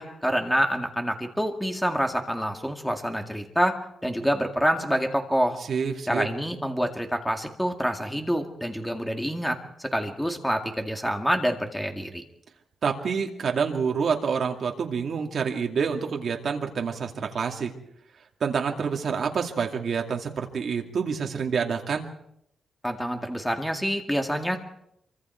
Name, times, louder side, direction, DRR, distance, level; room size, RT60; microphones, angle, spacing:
voice 1, 0.0-3.8 4.0-5.6 6.1-12.2 22.8-24.6, equal, ahead, 4 dB, 2.1 m, -27 dB
voice 2, 5.7-6.3 12.8-17.7 18.4-22.0, right 6 dB, 50° right, 2 dB, 2.6 m, -27 dB
26.0 x 24.5 x 4.6 m, 0.77 s
wide cardioid pair, 160°, 0 cm